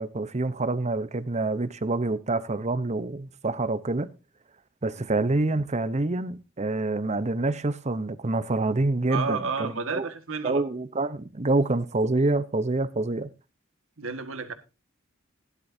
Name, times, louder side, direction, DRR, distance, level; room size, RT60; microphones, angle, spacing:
voice 1, 0.0-4.1 4.8-10.1 10.4-13.3, right 2 dB, 35° right, 0.9 m, -27 dB
voice 2, 9.1-10.7 14.0-14.5, right 4 dB, 90° right, 1.8 m, -31 dB
17.0 x 11.0 x 2.7 m
head